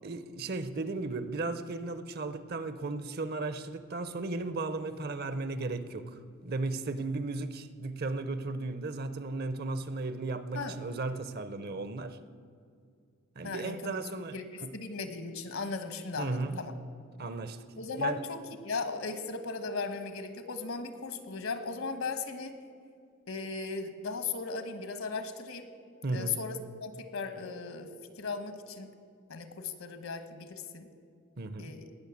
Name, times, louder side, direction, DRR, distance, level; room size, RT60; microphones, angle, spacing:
voice 1, 0.0-12.2 13.4-14.4 14.6-14.7 16.2-16.6 17.2-17.6 18.0-18.2 26.0-26.4 31.4-31.7, right 3 dB, 45° right, 13 dB, 0.7 m, -35 dB
voice 2, 13.4-14.0 14.3-16.7 17.8-22.6 23.3-25.7 26.1-27.9 28.2-28.9 29.3-30.9 31.6-31.8, left 4 dB, 75° left, 9 dB, 1.4 m, -37 dB
18.5 x 6.4 x 8.5 m, 2.3 s
head